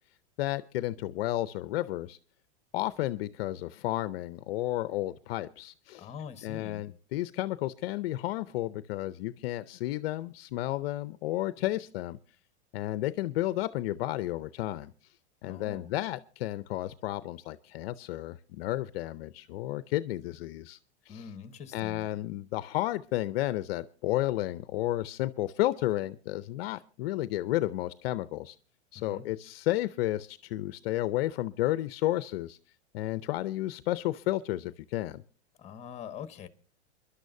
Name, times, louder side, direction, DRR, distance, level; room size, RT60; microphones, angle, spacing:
voice 1, 0.4-2.2 2.7-6.1 6.4-12.2 12.7-14.9 15.4-20.8 21.1-21.3 21.7-28.6 28.9-32.6 32.9-35.2, left 15 dB, 60° left, 0.6 m, -32 dB
voice 2, 5.9-6.8 15.5-16.0 21.1-22.1 28.9-29.3 35.6-36.5, left 7 dB, 20° left, 1.3 m, -44 dB
28.0 x 11.5 x 2.7 m
supercardioid pair, 135°, 33 cm